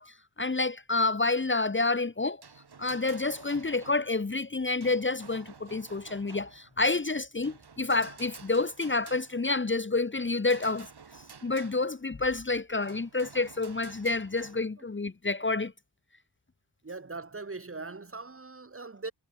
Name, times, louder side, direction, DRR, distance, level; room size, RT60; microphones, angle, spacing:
voice 1, 0.0-2.4 2.8-10.9 11.4-15.7, left 3 dB, 25° left, 1.4 m, -29 dB
sound 1, 2.2-4.4 4.8-6.9 7.4-9.6 10.1-12.0 12.8-14.6, right 5 dB, 55° right, 6.1 m, -51 dB
voice 2, 16.8-19.1, right 3 dB, 30° right, 2.5 m, -40 dB
wide cardioid pair, 130°, 45 cm